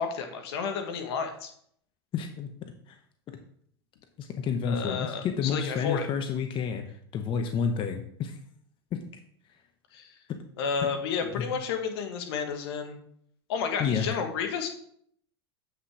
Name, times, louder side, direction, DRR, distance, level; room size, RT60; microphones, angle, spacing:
voice 1, 0.0-1.5 4.6-6.1 9.9-10.1 10.6-13.0 13.5-14.7, left 6 dB, 70° left, 5 dB, 1.5 m, -31 dB
voice 2, 2.1-2.5 2.9-3.0 4.2-8.4 8.9-9.0 11.4-11.5 13.8-14.1, left 6 dB, 35° left, 6 dB, 0.9 m, -30 dB
8.0 x 6.1 x 4.8 m, 0.65 s
hypercardioid pair, 95°, 14 cm